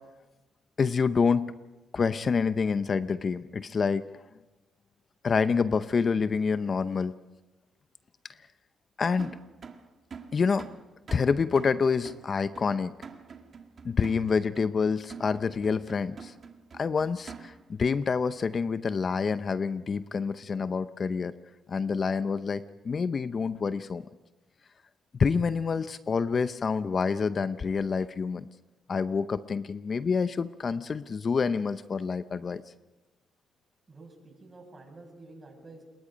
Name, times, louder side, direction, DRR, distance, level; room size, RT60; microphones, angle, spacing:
voice 1, 0.8-1.5 1.9-4.1 5.2-7.1 9.0-9.4 10.3-10.7 11.1-12.9 13.8-16.3 16.7-21.3 21.7-24.0 25.2-28.5 28.9-32.6, left 5 dB, 40° left, 12 dB, 0.7 m, -27 dB
sound 1, 9.2-17.8, right 5 dB, 45° right, 2.1 m, -47 dB
voice 2, 33.9-35.8, right 2 dB, 30° right, 2 dB, 7.8 m, -49 dB
27.5 x 22.0 x 5.2 m, 1.1 s
cardioid pair, 90°, 0 cm